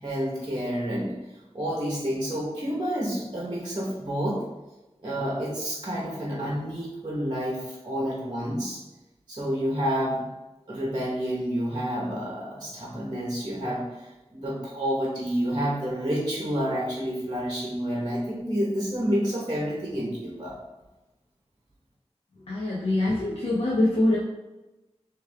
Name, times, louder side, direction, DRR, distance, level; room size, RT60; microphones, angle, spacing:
voice 1, 0.0-1.1 1.5-4.4 5.0-8.8 9.3-10.3 10.7-20.6, equal, 40° right, -4 dB, 1.2 m, -29 dB
voice 2, 22.5-24.2, left 1 dB, 65° left, -6 dB, 0.9 m, -24 dB
4.6 x 3.1 x 3.5 m, 1.0 s
wide cardioid pair, 70°, 11 cm